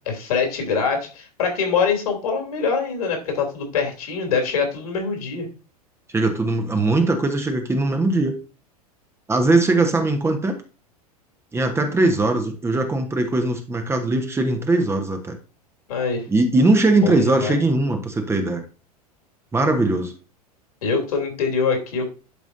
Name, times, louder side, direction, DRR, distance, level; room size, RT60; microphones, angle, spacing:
voice 1, 0.0-5.5 15.9-16.3 17.0-17.6 20.8-22.1, left 5 dB, 65° left, 3 dB, 3.1 m, -24 dB
voice 2, 6.1-8.4 9.3-10.5 11.5-15.4 16.3-18.6 19.5-20.1, right 2 dB, 15° right, 5 dB, 1.2 m, -20 dB
11.5 x 4.9 x 2.6 m, 0.34 s
figure-of-eight pair, 85°, 20 cm